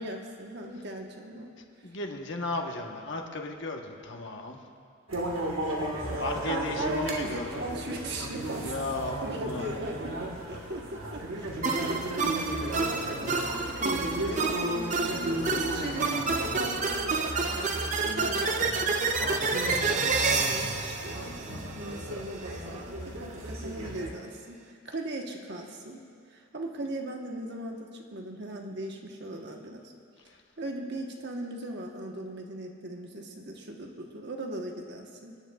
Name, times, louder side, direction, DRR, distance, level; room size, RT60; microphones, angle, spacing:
voice 1, 0.0-1.6 6.5-8.7 9.2-17.8 18.0-21.4 21.8-26.0 26.3-29.9 30.6-35.4, right 1 dB, 55° right, 1 dB, 1.2 m, -38 dB
voice 2, 1.8-4.6 6.2-7.7 8.6-9.7, left 2 dB, 60° left, 2 dB, 1.1 m, -35 dB
sound 1, 5.1-24.1, right 1 dB, 85° right, 1.7 m, -35 dB
Opening Chest, 11.6-22.0, right 4 dB, 35° right, 0.6 m, -29 dB
27.0 x 10.5 x 2.4 m, 2.2 s
head